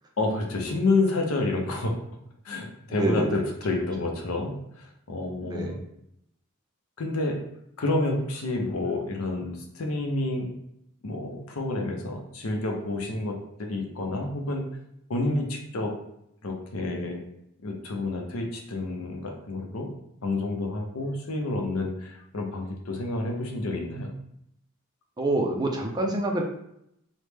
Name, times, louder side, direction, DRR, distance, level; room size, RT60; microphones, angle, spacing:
voice 1, 0.2-2.0 2.4-5.8 7.0-7.4 7.8-10.5 11.0-14.6 15.1-15.9 16.4-17.2 17.6-19.9 20.2-24.1, left 2 dB, 85° left, 2 dB, 0.6 m, -29 dB
voice 2, 2.9-3.4 5.4-5.8 25.2-26.4, right 2 dB, 20° right, 1 dB, 0.4 m, -27 dB
3.0 x 2.1 x 3.3 m, 0.77 s
head